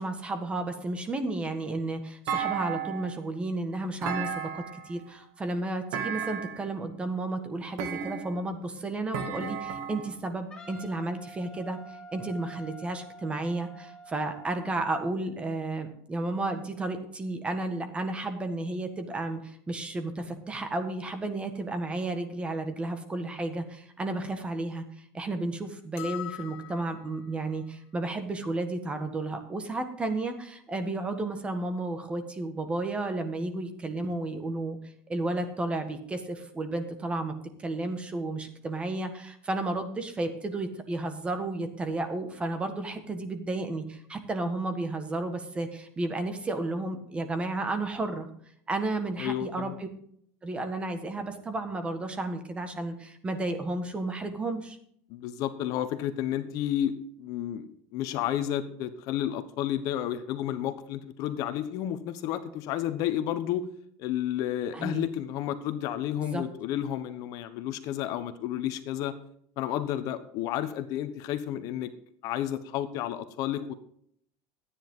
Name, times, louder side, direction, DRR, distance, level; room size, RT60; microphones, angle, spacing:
voice 1, 0.0-34.8 35.1-37.3 37.6-48.3 48.7-49.9 50.4-54.8 64.7-65.1 66.2-66.4, right 2 dB, 15° right, 8 dB, 1.6 m, -32 dB
Thump thud, 2.3-3.2 4.0-4.9 5.9-6.7 7.8-8.5 9.1-10.2, right 7 dB, 70° right, 2.5 m, -33 dB
Wind instrument woodwind instrument, 10.5-15.0, right 1 dB, 10° left, 2.9 m, -48 dB
sound 1, 26.0-27.3, left 15 dB, 75° left, 1.4 m, -41 dB
voice 2, 49.2-49.8 55.1-56.9 57.2-63.6 64.0-69.1 69.6-71.9 72.2-73.7, left 11 dB, 55° left, 10 dB, 1.1 m, -31 dB
13.5 x 10.0 x 3.8 m, 0.65 s
cardioid pair, 155°, 7 cm